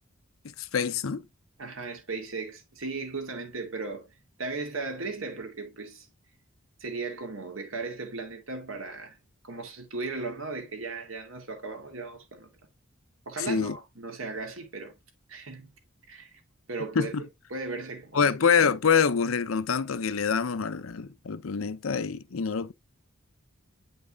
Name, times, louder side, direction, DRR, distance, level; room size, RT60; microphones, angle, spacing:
voice 1, 0.4-1.3 13.4-13.8 16.9-17.3 18.1-22.7, left 6 dB, 90° left, 0.6 m, -26 dB
voice 2, 1.6-6.1 6.8-9.2 9.4-12.5 13.3-14.9 15.3-15.7 16.1-16.4 16.7-17.1 17.5-18.3, right 3 dB, 85° right, 2.3 m, -36 dB
9.0 x 5.3 x 2.4 m
head